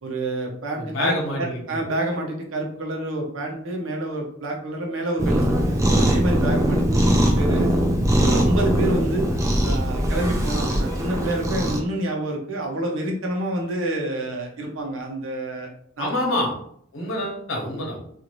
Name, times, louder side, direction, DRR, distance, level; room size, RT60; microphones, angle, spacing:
voice 1, 0.0-5.5 5.8-7.7 8.1-9.3 9.6-15.7 16.0-16.1, right 1 dB, 85° right, 1 dB, 0.7 m, -28 dB
voice 2, 0.8-1.6 16.0-16.5 16.9-18.0, left 1 dB, 75° left, -1 dB, 1.0 m, -26 dB
Cat, 5.2-11.8, equal, 15° right, 0.3 m, -21 dB
2.6 x 2.5 x 3.0 m, 0.67 s
head